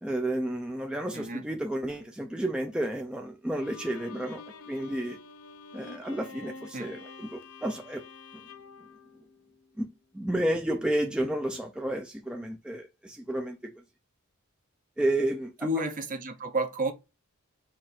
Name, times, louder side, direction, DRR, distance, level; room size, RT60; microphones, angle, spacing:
voice 1, 0.0-4.4 4.7-5.2 5.7-8.0 9.8-9.9 10.1-13.7 15.0-15.7, right 1 dB, 5° right, 0.4 m, -31 dB
Bowed string instrument, 3.6-9.8, left 4 dB, 70° left, 0.5 m, -48 dB
voice 2, 15.6-16.9, right 1 dB, 40° right, 0.7 m, -30 dB
4.3 x 2.6 x 4.1 m
head